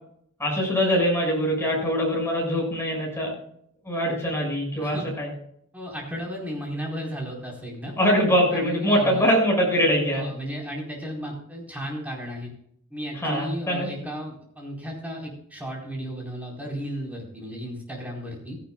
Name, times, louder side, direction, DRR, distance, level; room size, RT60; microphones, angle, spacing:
voice 1, 0.4-3.3 3.8-5.3 8.0-10.2 13.1-13.9, equal, 10° left, -1 dB, 6.3 m, -23 dB
voice 2, 5.7-7.9 8.5-9.2 10.1-12.5 12.9-18.6, equal, 5° right, -2 dB, 4.5 m, -34 dB
17.0 x 14.5 x 2.4 m, 0.67 s
head